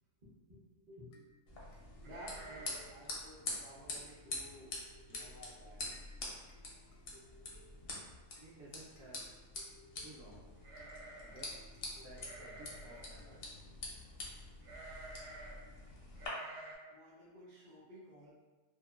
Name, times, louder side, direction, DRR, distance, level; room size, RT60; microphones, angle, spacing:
voice 1, 0.2-4.7 5.1-5.8 16.9-18.3, equal, 50° right, -7 dB, 0.5 m, -55 dB
sound 1, 1.1-13.9, left 1 dB, 80° left, 1.1 m, -64 dB
sound 2, 1.5-16.3, left 2 dB, 65° left, 0.6 m, -46 dB
sound 3, 2.0-3.0 3.3-3.4 3.8-4.1 4.7-4.8 5.1-5.6 5.9-6.0 7.1-7.2 7.5-7.9 10.6-11.6 12.2-13.1 14.6-15.6 16.2-16.8, right 2 dB, 90° right, 1.2 m, -51 dB
voice 2, 8.4-9.2 10.0-10.5 11.2-11.5 12.0-13.4, right 2 dB, 65° right, -6 dB, 1.0 m, -55 dB
2.8 x 2.2 x 2.3 m, 1.2 s
omnidirectional pair, 1.7 m